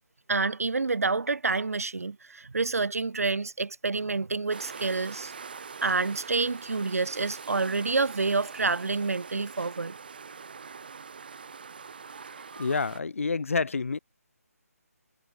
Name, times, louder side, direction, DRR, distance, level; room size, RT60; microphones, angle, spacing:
voice 1, 0.3-5.3 5.8-9.9 12.2-12.3 12.6-12.7, right 3 dB, 65° right, 2.5 m, -28 dB
sound 1, 4.5-13.0, right 5 dB, 35° right, 1.5 m, -43 dB
voice 2, 12.6-14.0, left 4 dB, 55° left, 0.6 m, -28 dB
hypercardioid pair, 175°, 9 cm